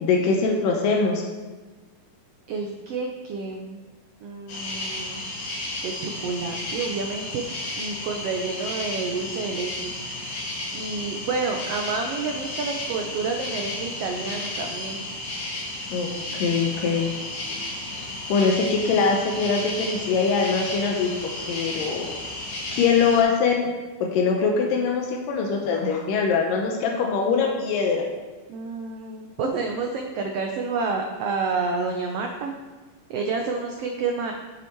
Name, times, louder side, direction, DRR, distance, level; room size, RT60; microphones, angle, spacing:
voice 1, 0.0-1.2 15.9-17.1 18.3-21.1 21.5-22.1 22.7-23.6 24.0-28.1, left 5 dB, 85° left, 1 dB, 2.5 m, -22 dB
voice 2, 2.5-3.9 4.2-5.2 5.8-9.9 10.7-15.1 28.5-32.5 33.1-34.3, right 4 dB, 80° right, 2 dB, 1.4 m, -29 dB
sound 1, 4.5-23.2, left 2 dB, 65° left, 3.2 m, -33 dB
8.2 x 7.2 x 4.5 m, 1.3 s
omnidirectional pair, 3.8 m